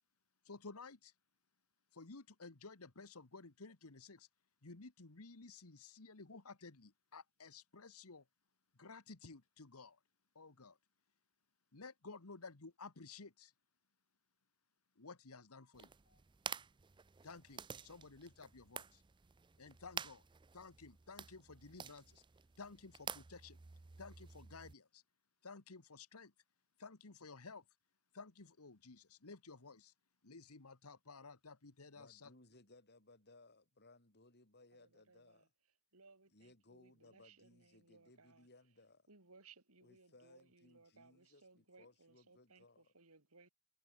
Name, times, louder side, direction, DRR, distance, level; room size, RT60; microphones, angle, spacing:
voice 1, 0.4-1.1 1.9-4.3 4.6-8.3 8.7-10.0 10.3-10.8 11.7-13.5 14.9-16.2 17.2-19.0 19.6-20.3 20.5-22.2 22.6-23.6 24.0-25.0 25.4-26.3 26.8-27.7 28.1-29.9 30.2-32.3, left 4 dB, 85° left, 1.6 m, -54 dB
sound 1, 15.7-24.7, right 7 dB, 20° right, 0.4 m, -50 dB
voice 2, 32.0-35.5 36.3-39.1 39.8-42.8, left 2 dB, 50° left, 6.1 m, -65 dB
voice 3, 34.7-35.5 35.9-38.5 39.1-43.5, right 4 dB, 85° right, 3.6 m, -65 dB
head